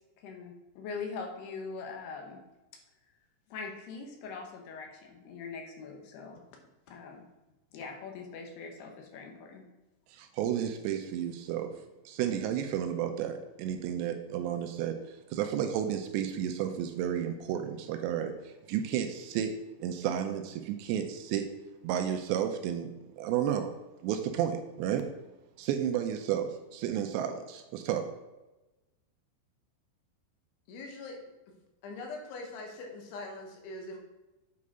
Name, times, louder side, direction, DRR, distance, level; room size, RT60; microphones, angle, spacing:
voice 1, 0.2-2.4 3.5-6.4 6.9-7.3 7.7-9.6, left 5 dB, 75° left, 3 dB, 2.8 m, -42 dB
voice 2, 10.1-11.7 12.1-19.5 19.8-21.5 21.8-22.9 23.2-23.7 24.0-25.1 25.6-28.1, right 9 dB, 80° right, 7 dB, 2.7 m, -32 dB
voice 3, 30.7-31.2 31.8-34.0, left 2 dB, 90° left, 1 dB, 3.8 m, -42 dB
8.5 x 4.8 x 5.4 m, 1.1 s
omnidirectional pair, 5.3 m